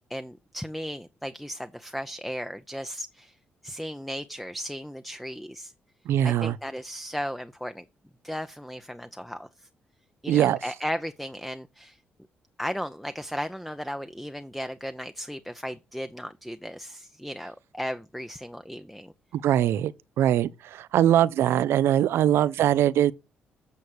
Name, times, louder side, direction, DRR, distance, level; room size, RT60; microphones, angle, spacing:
voice 1, 0.1-3.4 3.6-5.7 6.2-7.8 8.2-9.5 10.2-12.0 12.6-19.1, equal, ahead, 0.7 m, -35 dB
voice 2, 6.1-6.6 10.3-10.6 19.3-19.9 20.2-23.1, right 11 dB, 75° right, 0.5 m, -22 dB
8.4 x 6.5 x 4.7 m
supercardioid pair, 55°, 4 cm